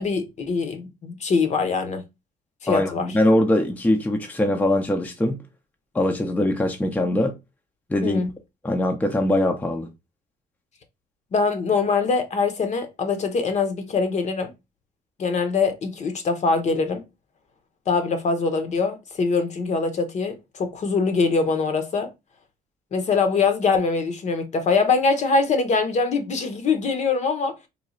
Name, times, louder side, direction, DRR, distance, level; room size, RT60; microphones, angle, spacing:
voice 1, 0.0-2.0 2.6-3.1 8.0-8.3 11.3-14.5 15.2-17.0 17.9-22.1 22.9-27.5, left 4 dB, 45° left, 0.8 m, -23 dB
voice 2, 2.7-5.4 5.9-7.3 7.9-8.2 8.6-9.9, left 1 dB, 10° left, 0.5 m, -22 dB
3.1 x 2.3 x 3.7 m
cardioid pair, 110°, 17 cm